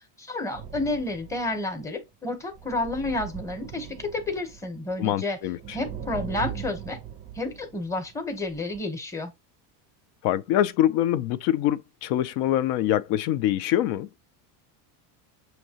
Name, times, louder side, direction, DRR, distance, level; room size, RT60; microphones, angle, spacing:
voice 1, 0.2-5.4 5.7-7.0 7.3-9.3, left 2 dB, 5° left, 0.8 m, -30 dB
sound 1, 0.5-1.8 2.5-5.0 5.3-8.2 8.5-8.8, right 9 dB, 20° right, 0.5 m, -40 dB
voice 2, 5.0-5.8 10.2-14.1, left 12 dB, 60° left, 0.5 m, -24 dB
6.4 x 2.7 x 2.8 m
cardioid pair, 150°, 46 cm